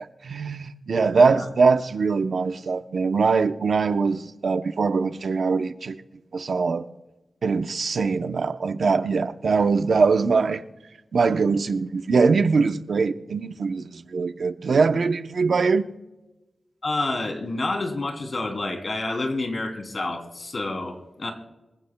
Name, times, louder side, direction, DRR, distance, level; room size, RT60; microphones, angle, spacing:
voice 1, 0.0-6.0 6.3-6.8 7.4-10.6 11.1-15.8, right 4 dB, 75° right, 0.7 m, -22 dB
voice 2, 1.1-1.4 16.8-21.3, left 2 dB, 50° left, 3.0 m, -29 dB
26.5 x 15.0 x 2.2 m
wide cardioid pair, 95°, 0 cm